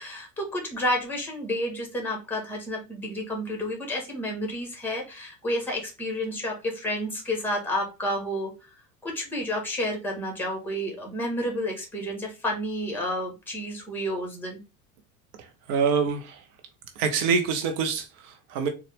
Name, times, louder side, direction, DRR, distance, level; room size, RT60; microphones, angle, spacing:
voice 1, 0.0-8.5 9.0-14.6, left 1 dB, 5° left, 1.5 m, -30 dB
voice 2, 15.4-16.4 17.0-18.7, right 6 dB, 55° right, 0.8 m, -26 dB
3.9 x 2.4 x 3.4 m
hypercardioid pair, 80°, 46 cm